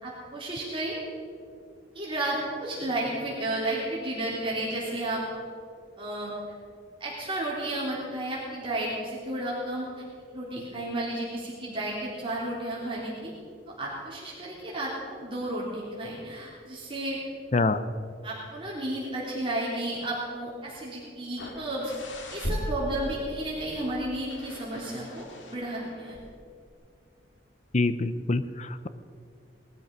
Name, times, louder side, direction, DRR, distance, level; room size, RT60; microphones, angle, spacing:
voice 1, 0.0-1.0 1.9-5.2 6.0-6.3 7.0-9.9 10.3-13.3 13.7-17.2 18.2-21.9 22.3-26.2, right 1 dB, 30° right, -6 dB, 3.5 m, -32 dB
voice 2, 17.5-17.8 27.7-28.9, left 3 dB, 40° left, 13 dB, 0.7 m, -25 dB
sound 1, 21.4-26.4 26.7-26.8, equal, 85° left, 2.1 m, -38 dB
20.0 x 12.5 x 5.4 m, 2.3 s
head